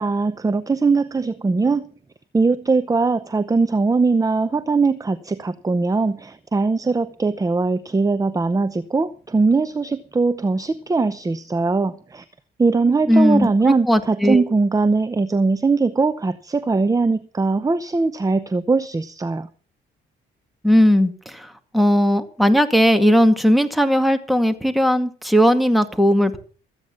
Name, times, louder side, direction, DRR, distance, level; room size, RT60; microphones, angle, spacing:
voice 1, 0.0-1.9 2.3-12.2 12.6-19.5, right 3 dB, 15° right, 0.7 m, -20 dB
voice 2, 13.1-13.5 13.9-14.4 20.6-26.4, equal, ahead, 2.1 m, -17 dB
14.5 x 9.0 x 7.2 m
cardioid pair, 90°, 20 cm